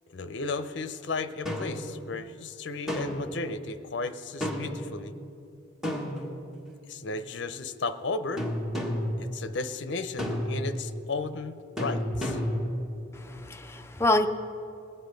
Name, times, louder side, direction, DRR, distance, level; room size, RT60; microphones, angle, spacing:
voice 1, 0.1-5.1 6.9-8.4 9.2-12.4, left 3 dB, 65° left, 11 dB, 0.6 m, -34 dB
sound 1, 1.5-1.9 2.9-3.4 4.4-4.8 5.8-6.7 8.4-9.2 10.2-10.8 11.8-12.7, equal, ahead, 1.4 m, -31 dB
voice 2, 13.1-14.3, left 2 dB, 15° left, 6 dB, 0.5 m, -26 dB
20.5 x 7.8 x 5.2 m, 2.6 s
head